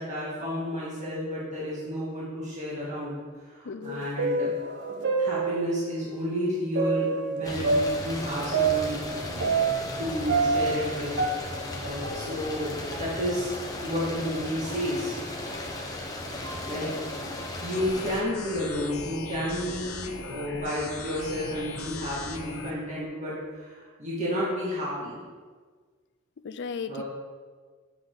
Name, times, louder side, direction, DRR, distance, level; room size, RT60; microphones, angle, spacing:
voice 1, 0.0-9.0 10.0-11.5 11.8-13.5 13.8-15.2 16.7-16.9 17.6-25.2 26.9-27.0, equal, 35° right, -8 dB, 2.2 m, -31 dB
voice 2, 3.6-4.1 16.6-17.1 26.4-27.0, left 5 dB, 55° left, 11 dB, 0.5 m, -37 dB
sound 1, 3.8-6.0 6.7-10.0 10.3-12.7 12.9-13.0 13.8-13.9 14.6-14.9 15.5-15.6 16.4-16.7, right 4 dB, 55° right, 1.0 m, -28 dB
sound 2, 7.4-18.2, left 1 dB, 20° left, 1.1 m, -36 dB
sound 3, 17.7-22.7, left 4 dB, 80° left, 0.9 m, -39 dB
9.7 x 7.0 x 4.0 m, 1.6 s
head